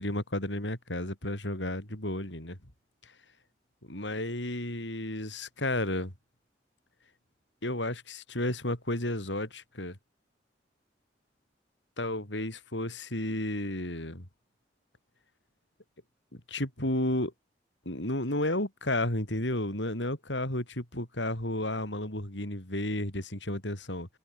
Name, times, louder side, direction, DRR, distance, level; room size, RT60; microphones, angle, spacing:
voice 1, 0.0-2.6 3.0-3.1 3.9-6.1 7.6-10.0 12.0-14.3 16.5-17.3 17.9-24.1, left 1 dB, 85° left, 7.7 m, -32 dB
head